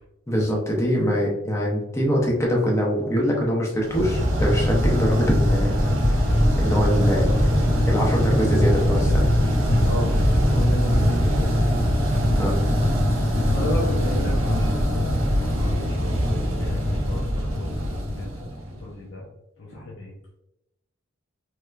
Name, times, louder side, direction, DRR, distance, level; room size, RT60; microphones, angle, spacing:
voice 1, 0.3-5.7 6.6-7.5 7.9-9.3 12.4-12.6, equal, 15° left, -2 dB, 0.6 m, -23 dB
sound 1, 3.9-18.9, equal, 85° right, 0.8 m, -21 dB
voice 2, 9.8-11.8 13.5-17.8 18.1-18.5 18.8-19.2 19.6-20.1, left 1 dB, 65° left, -5 dB, 0.7 m, -34 dB
3.2 x 2.8 x 2.3 m, 0.85 s
head